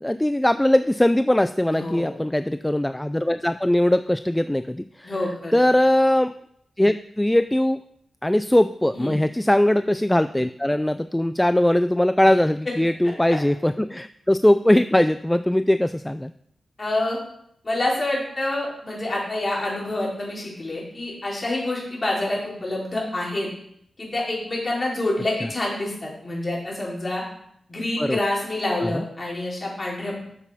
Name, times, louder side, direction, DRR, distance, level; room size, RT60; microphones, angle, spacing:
voice 1, 0.0-5.1 5.5-6.3 6.8-7.8 8.2-16.3 28.0-28.2 28.8-29.0, left 1 dB, 10° left, 12 dB, 0.3 m, -20 dB
voice 2, 1.7-2.2 5.0-5.6 8.9-9.2 12.2-12.4 12.7-12.8 13.3-13.4 16.8-17.2 17.6-23.5 24.0-27.2 27.7-30.2, left 2 dB, 35° left, -4 dB, 4.0 m, -27 dB
8.2 x 7.1 x 5.6 m, 0.72 s
cardioid pair, 80°, 0 cm